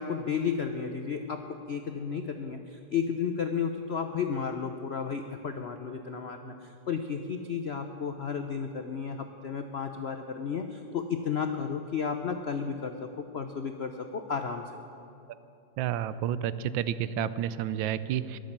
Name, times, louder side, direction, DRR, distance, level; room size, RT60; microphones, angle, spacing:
voice 1, 0.0-14.6, left 6 dB, 70° left, 6 dB, 0.6 m, -33 dB
voice 2, 15.8-18.4, right 10 dB, 85° right, 15 dB, 1.4 m, -30 dB
22.0 x 7.6 x 7.4 m, 2.7 s
omnidirectional pair, 2.0 m